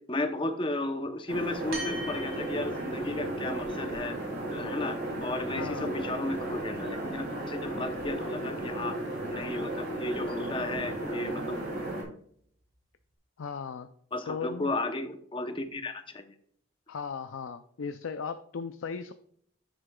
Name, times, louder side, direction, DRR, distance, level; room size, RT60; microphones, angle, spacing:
voice 1, 0.1-4.2 4.5-9.0 9.3-11.6 14.1-16.2, left 2 dB, 25° left, 8 dB, 0.7 m, -34 dB
sound 1, 1.3-12.0, right 1 dB, 50° right, 2.7 m, -35 dB
sound 2, 1.7-10.4, right 2 dB, 80° right, 2.2 m, -47 dB
voice 2, 5.6-5.9 13.4-13.9 14.3-14.7 16.9-19.1, left 5 dB, 85° left, 10 dB, 0.4 m, -36 dB
9.8 x 7.8 x 2.3 m, 0.64 s
head